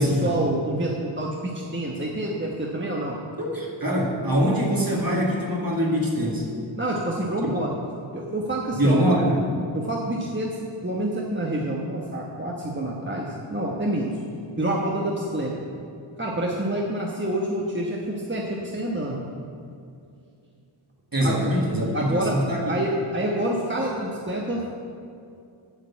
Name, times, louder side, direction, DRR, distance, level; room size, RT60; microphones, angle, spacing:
voice 1, 0.0-3.2 6.8-7.7 8.1-9.0 9.7-14.1 14.6-15.5 16.2-19.2 21.2-21.5 21.9-22.4 22.7-24.7, right 1 dB, 20° right, -3 dB, 1.1 m, -27 dB
voice 2, 3.4-6.5 8.8-9.4 21.1-22.7, equal, 45° right, -3 dB, 2.1 m, -23 dB
8.1 x 6.7 x 8.4 m, 2.5 s
wide cardioid pair, 55°, 50 cm